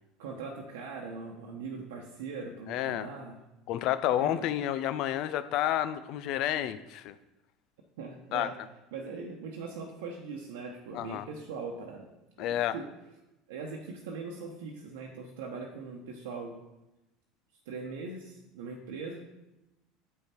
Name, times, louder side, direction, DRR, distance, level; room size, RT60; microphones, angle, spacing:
voice 1, 0.2-3.4 4.1-4.4 8.0-8.5 8.9-12.1 12.4-12.9 13.5-16.6 17.7-19.2, right 4 dB, 75° right, 0 dB, 1.0 m, -40 dB
voice 2, 2.7-3.1 3.7-7.2 8.3-8.5 10.9-11.2 12.4-12.7, left 12 dB, 60° left, 13 dB, 0.4 m, -30 dB
7.5 x 5.6 x 4.4 m, 0.95 s
hypercardioid pair, 75°, 0 cm